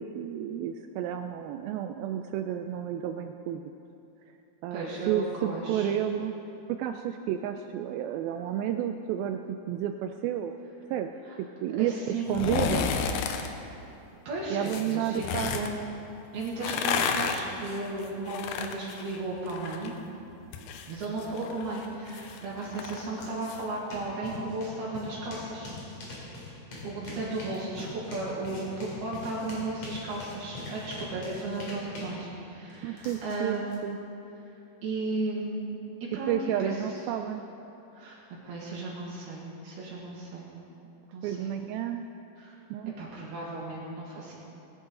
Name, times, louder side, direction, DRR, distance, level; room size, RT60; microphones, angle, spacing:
voice 1, 0.0-3.6 4.6-6.3 6.8-9.4 9.7-10.6 10.9-12.0 12.3-12.9 14.5-15.5 29.4-30.0 32.8-34.0 36.3-37.4 41.2-42.0 42.7-42.9, right 10 dB, 90° right, 6 dB, 2.1 m, -31 dB
voice 2, 4.7-5.9 11.3-11.4 11.8-12.3 14.3-15.2 15.5-15.8 16.3-19.9 20.9-25.7 26.8-33.8 34.8-35.8 36.1-36.3 36.6-36.8 37.9-40.5 41.1-41.5 42.4-42.6 43.0-44.3, right 2 dB, 70° right, -5 dB, 3.7 m, -35 dB
sound 1, 12.3-13.5 14.6-15.7 16.5-19.9 20.2-23.6 24.0-24.1, left 6 dB, 80° left, 2.5 m, -32 dB
sound 2, 23.2-23.3 23.6-33.8, left 2 dB, 45° left, 3.3 m, -43 dB
21.0 x 10.0 x 3.8 m, 2.8 s
omnidirectional pair, 4.7 m